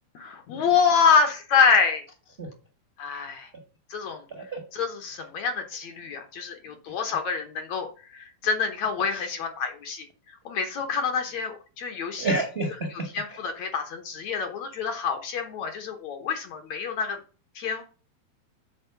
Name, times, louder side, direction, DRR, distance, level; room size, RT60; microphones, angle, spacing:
voice 1, 0.2-2.0 3.0-3.5 3.9-4.2 4.7-10.1 10.5-12.3 13.1-17.2 17.6-17.8, left 6 dB, 65° left, 5 dB, 1.9 m, -26 dB
voice 2, 12.2-13.4, right 2 dB, 40° right, 3 dB, 0.8 m, -30 dB
8.2 x 4.2 x 6.8 m, 0.36 s
omnidirectional pair, 4.0 m